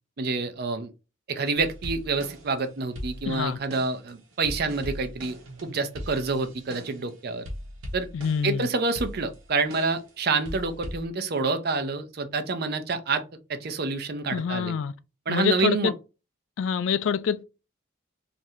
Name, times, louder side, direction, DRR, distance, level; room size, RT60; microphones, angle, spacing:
voice 1, 0.2-0.9 1.3-7.4 7.9-8.1 8.4-13.2 13.5-14.7 15.3-15.9, right 3 dB, 50° right, 0.5 m, -28 dB
sound 1, 1.6-2.6 2.9-7.1 7.4-8.6 8.9-10.1 10.4-11.0, equal, 75° right, 0.9 m, -39 dB
voice 2, 3.2-3.6 8.1-8.7 14.3-14.9 15.3-15.9 16.6-17.4, left 7 dB, 65° left, 0.3 m, -26 dB
2.7 x 2.5 x 3.1 m
head